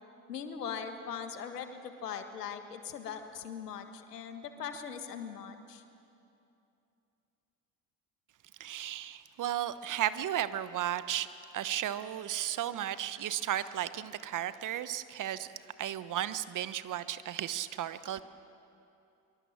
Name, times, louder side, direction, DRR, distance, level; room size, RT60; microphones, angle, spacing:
voice 1, 0.3-5.8, left 7 dB, 85° left, 7 dB, 1.7 m, -40 dB
voice 2, 8.6-11.3 11.5-15.5 15.8-18.2, right 11 dB, 40° right, 14 dB, 1.1 m, -34 dB
24.5 x 23.5 x 7.4 m, 2.7 s
hypercardioid pair, 65°, 46 cm